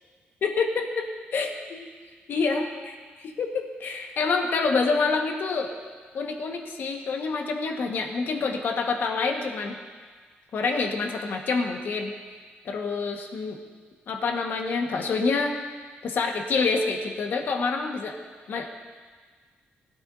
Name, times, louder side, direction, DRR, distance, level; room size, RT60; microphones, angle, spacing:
voice 1, 0.4-1.9 2.3-5.7 6.1-9.8 10.5-12.1 12.6-13.6 14.1-15.5 16.0-18.2 18.5-18.7, left 4 dB, 60° left, 2 dB, 1.5 m, -27 dB
20.0 x 12.5 x 2.7 m, 1.5 s
wide cardioid pair, 140°, 4 cm